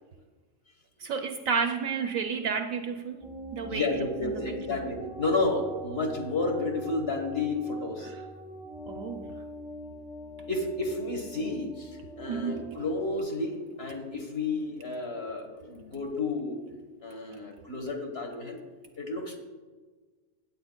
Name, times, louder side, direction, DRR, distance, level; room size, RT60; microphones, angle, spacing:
voice 1, 1.0-3.3 3.5-3.9 4.2-4.8 8.0-8.1 8.9-9.3 12.3-12.7, right 6 dB, 70° right, 5 dB, 0.9 m, -31 dB
sound 1, 3.2-13.2, right 1 dB, 5° right, 0.8 m, -43 dB
voice 2, 3.7-8.1 10.5-16.6 17.0-18.6 19.0-19.4, left 3 dB, 40° left, 3 dB, 1.3 m, -31 dB
16.0 x 8.7 x 2.2 m, 1.4 s
omnidirectional pair, 1.7 m